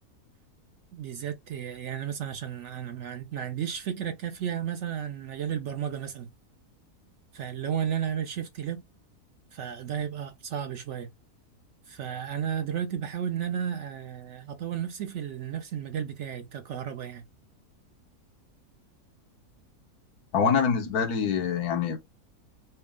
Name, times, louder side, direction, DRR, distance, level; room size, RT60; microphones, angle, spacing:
voice 1, 0.9-6.3 7.3-8.8 9.5-11.1 11.9-17.3, right 9 dB, 65° right, 0.7 m, -33 dB
voice 2, 20.3-22.0, left 6 dB, 80° left, 1.4 m, -25 dB
4.3 x 2.0 x 3.5 m
omnidirectional pair, 1.6 m